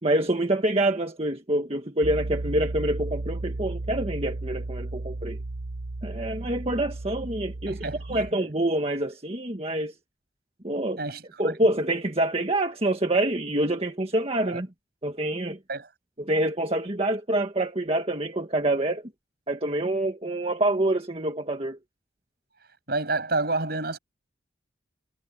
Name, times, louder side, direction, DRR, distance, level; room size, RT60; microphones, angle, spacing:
voice 1, 0.0-5.4 6.0-9.9 10.6-11.0 11.4-14.7 15.0-15.6 16.2-19.0 19.5-21.8, right 1 dB, 30° right, 1.7 m, -26 dB
Piano, 2.0-8.3, right 2 dB, 70° right, 1.1 m, -34 dB
voice 2, 7.7-8.2 11.0-11.5 14.5-14.6 15.7-15.9 22.9-24.0, right 3 dB, 55° right, 7.6 m, -29 dB
head